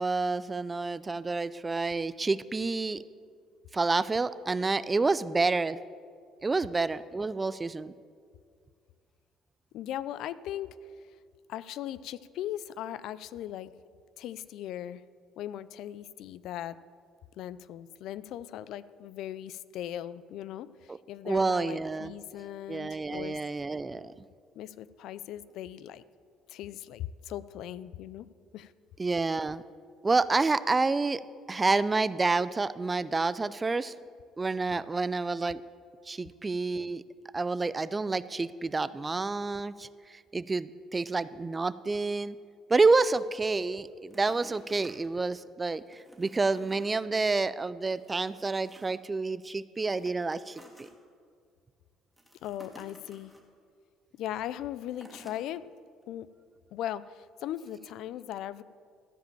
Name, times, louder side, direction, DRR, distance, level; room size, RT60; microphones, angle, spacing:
voice 1, 0.0-3.0 3.7-5.8 6.4-7.9 21.3-22.1 22.7-24.1 29.0-29.6 30.0-31.2 31.5-33.9 34.4-35.6 36.1-37.0 37.3-42.4 42.7-50.9, right 3 dB, 20° right, 17 dB, 0.3 m, -28 dB
voice 2, 9.7-11.2 11.5-13.7 14.2-15.0 15.4-16.8 17.4-23.4 24.6-26.0 26.5-28.3 28.5-28.7 52.4-53.3 54.1-55.7 56.1-56.3 56.7-58.6, left 11 dB, 70° left, 17 dB, 0.3 m, -39 dB
sound 1, 44.1-45.4 45.9-46.9 47.3-47.4 47.8-49.1 49.7-50.9 52.1-53.4 54.9-55.4 56.0-56.1, equal, ahead, 1.8 m, -54 dB
13.5 x 5.0 x 7.3 m, 2.2 s
cardioid pair, 95°, 0 cm